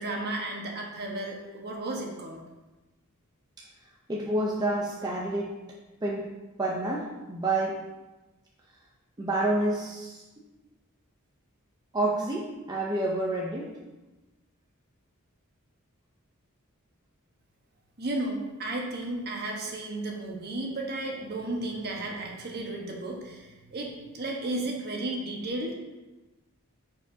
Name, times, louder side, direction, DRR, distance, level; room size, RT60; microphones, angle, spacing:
voice 1, 0.0-2.4 18.0-25.7, right 2 dB, 50° right, 0 dB, 1.2 m, -34 dB
voice 2, 4.1-5.6 6.0-6.3 6.6-7.8 9.2-10.2 11.9-13.8, right 2 dB, 20° right, -3 dB, 0.6 m, -28 dB
9.3 x 4.7 x 2.7 m, 1.1 s
head